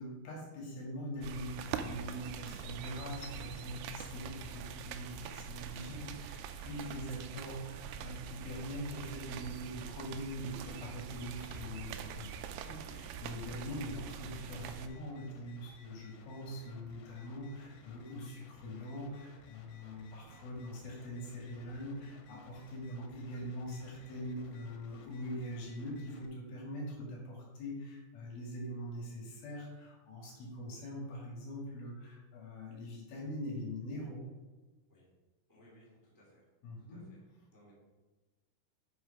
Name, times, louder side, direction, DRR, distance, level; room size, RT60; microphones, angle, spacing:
voice 1, 0.0-34.2 36.6-37.0, equal, 65° left, -2 dB, 3.6 m, -43 dB
sound 1, 1.2-14.9, right 7 dB, 80° right, 2.5 m, -44 dB
sound 2, 14.4-26.3, left 4 dB, 85° left, 3.2 m, -60 dB
voice 2, 35.5-36.5 36.8-37.2 37.5-37.7, equal, 10° right, -5 dB, 1.3 m, -62 dB
8.0 x 6.3 x 5.2 m, 1.2 s
omnidirectional pair, 4.8 m